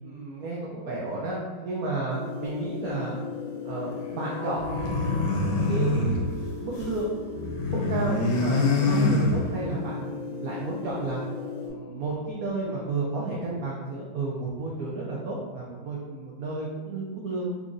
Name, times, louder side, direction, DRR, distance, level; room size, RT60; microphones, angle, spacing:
voice 1, 0.0-3.2 3.6-5.2 5.7-6.3 6.6-11.2 11.6-17.5, right 2 dB, 80° right, -4 dB, 0.8 m, -32 dB
sound 1, 2.1-11.7, left 5 dB, 40° right, 0.7 m, -37 dB
sound 2, 4.6-7.0 7.3-9.8, left 2 dB, 70° left, 1.1 m, -25 dB
3.7 x 2.9 x 2.5 m, 1.4 s
omnidirectional pair, 2.2 m